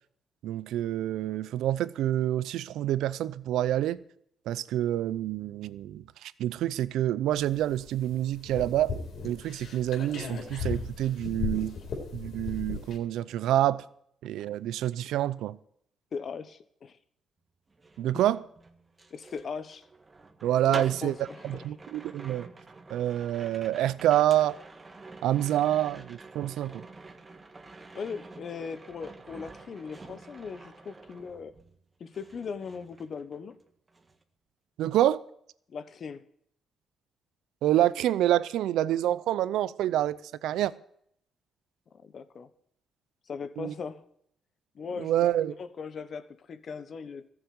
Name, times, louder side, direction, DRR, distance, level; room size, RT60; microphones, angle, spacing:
voice 1, 0.4-4.0 4.5-8.9 9.2-11.8 12.1-13.8 14.2-15.6 18.0-18.4 20.4-21.1 21.4-22.5 22.9-24.6 25.2-26.8 34.8-35.2 37.6-40.7 43.6-43.7 45.0-45.5, right 12 dB, 85° right, 0.5 m, -27 dB
sound 1, 7.3-13.0, left 4 dB, 70° left, 4.0 m, -37 dB
voice 2, 16.1-17.0 19.1-19.8 20.7-21.7 27.9-31.5 32.0-33.6 35.7-36.3 41.9-42.5 43.3-44.0 44.7-47.3, left 5 dB, 50° left, 1.2 m, -39 dB
sound 2, 17.7-31.8 32.1-33.6 33.9-34.2, right 3 dB, 25° right, 1.6 m, -48 dB
14.5 x 7.3 x 9.6 m
cardioid pair, 90°, 0 cm